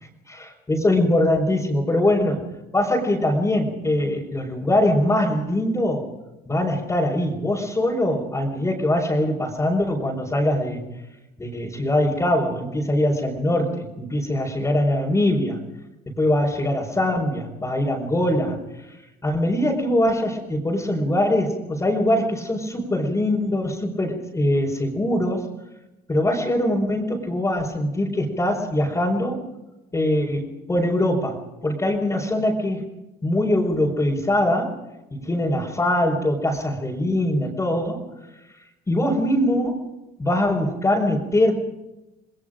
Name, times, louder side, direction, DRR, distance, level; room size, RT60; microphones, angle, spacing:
voice 1, 0.3-2.5 2.7-6.0 6.5-10.8 11.4-15.6 16.1-25.5 26.1-29.4 29.9-32.8 33.2-34.7 35.1-38.0 38.9-39.9 40.2-41.5, left 1 dB, 20° left, -3 dB, 4.7 m, -22 dB
29.0 x 20.5 x 5.2 m, 0.99 s
cardioid pair, 110°, 17 cm